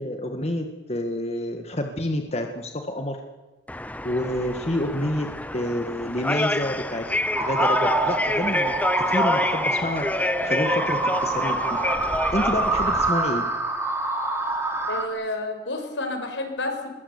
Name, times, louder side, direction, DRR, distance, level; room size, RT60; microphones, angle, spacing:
voice 1, 0.0-3.2 4.0-5.3 5.5-7.1 7.4-8.8 9.1-11.8 12.3-13.5, left 1 dB, 35° left, 4 dB, 1.9 m, -28 dB
sound 1, 3.7-13.1, left 1 dB, 10° left, 0.8 m, -27 dB
sound 2, 7.3-15.1, right 2 dB, 15° right, 3.4 m, -26 dB
voice 2, 14.9-16.9, left 2 dB, 80° left, 5 dB, 5.4 m, -30 dB
23.0 x 21.5 x 8.4 m, 1.2 s
head